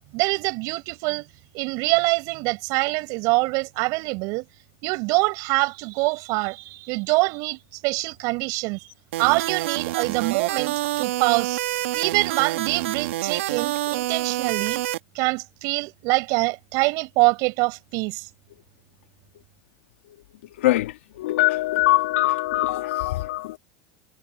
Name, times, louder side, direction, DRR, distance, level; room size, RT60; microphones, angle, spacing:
voice 1, 0.1-1.3 1.5-4.4 4.8-8.9 9.2-11.6 11.9-14.8 15.2-18.3, right 27 dB, 60° right, 7.1 m, -24 dB
sound 1, 9.1-15.0, right 15 dB, 85° right, 2.4 m, -27 dB
voice 2, 20.6-23.6, left 17 dB, 85° left, 2.6 m, -22 dB
supercardioid pair, 115°, 7 cm